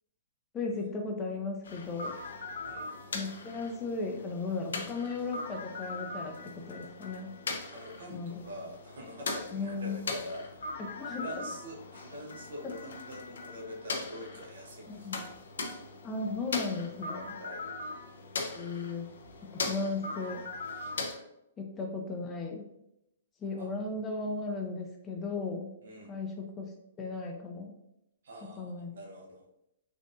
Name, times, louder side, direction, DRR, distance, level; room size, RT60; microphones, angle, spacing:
voice 1, 0.5-2.1 3.1-7.4 8.1-8.3 9.5-10.0 10.8-11.4 14.9-15.2 16.0-17.3 18.5-19.1 19.5-20.4 21.6-22.7 23.4-25.8 26.1-26.7 27.0-27.7 28.4-28.9, left 3 dB, 20° left, 1 dB, 0.5 m, -36 dB
sound 1, 1.6-21.2, left 3 dB, 75° left, 0.5 m, -40 dB
voice 2, 2.7-3.0 7.7-15.1 17.1-17.7 23.6-23.7 25.8-26.1 28.2-29.4, equal, 70° right, -1 dB, 0.9 m, -45 dB
3.7 x 2.5 x 2.5 m, 0.83 s
hypercardioid pair, 125°, 0 cm